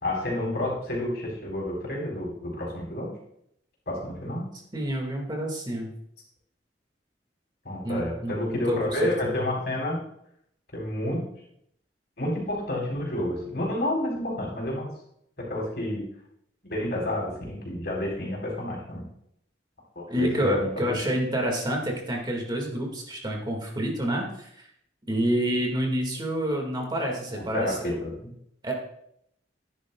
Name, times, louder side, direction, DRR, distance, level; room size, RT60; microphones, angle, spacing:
voice 1, 0.0-3.1 3.9-4.5 7.6-10.0 10.7-11.2 12.2-14.9 15.4-16.1 16.6-19.0 20.0-21.0 27.3-28.3, left 1 dB, 65° left, -3 dB, 4.3 m, -30 dB
voice 2, 4.7-5.9 7.8-9.3 20.1-24.7 25.1-28.0 28.6-28.7, right 1 dB, 25° right, 1 dB, 2.0 m, -28 dB
13.5 x 10.5 x 2.3 m, 0.71 s
head